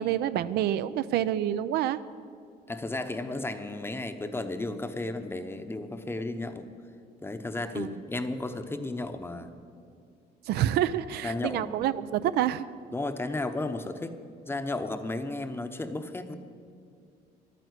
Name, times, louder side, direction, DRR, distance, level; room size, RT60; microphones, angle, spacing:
voice 1, 0.0-2.0 7.8-7.9 10.5-12.7, right 11 dB, 75° right, 14 dB, 0.5 m, -27 dB
voice 2, 2.7-6.7 7.2-9.5 11.2-11.7 12.9-14.1 14.5-16.4, left 2 dB, 15° left, 8 dB, 0.8 m, -33 dB
11.5 x 9.3 x 8.1 m, 2.3 s
cardioid pair, 110°, 17 cm